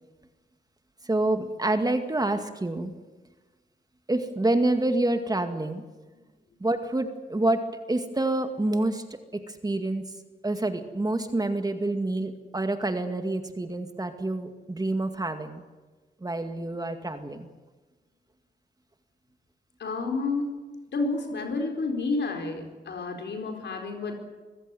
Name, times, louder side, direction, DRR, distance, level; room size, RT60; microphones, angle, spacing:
voice 1, 1.0-2.9 4.1-5.8 6.6-7.6 7.9-9.0 9.5-10.1 10.4-15.6 16.2-17.5, right 2 dB, 20° right, 7 dB, 2.1 m, -27 dB
voice 2, 19.8-20.6 20.9-24.2, left 3 dB, 80° left, 4 dB, 4.5 m, -30 dB
26.0 x 15.5 x 9.3 m, 1.3 s
wide cardioid pair, 95°, 18 cm